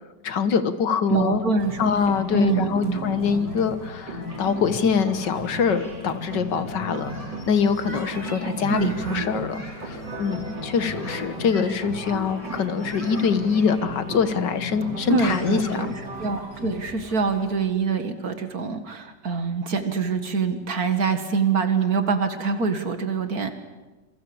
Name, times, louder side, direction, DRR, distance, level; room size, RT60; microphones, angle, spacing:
voice 1, 0.2-1.4 1.8-7.1 7.5-15.9, left 6 dB, 75° left, 11 dB, 1.9 m, -24 dB
voice 2, 1.1-1.9 2.3-3.0 8.7-9.2 15.1-15.9 16.2-23.5, right 4 dB, 55° right, 8 dB, 2.3 m, -25 dB
sound 1, 1.5-16.9, equal, 75° right, 4.3 m, -35 dB
sound 2, 1.6-17.6, equal, 20° left, 6.8 m, -44 dB
27.5 x 23.0 x 7.1 m, 1.2 s
omnidirectional pair, 1.9 m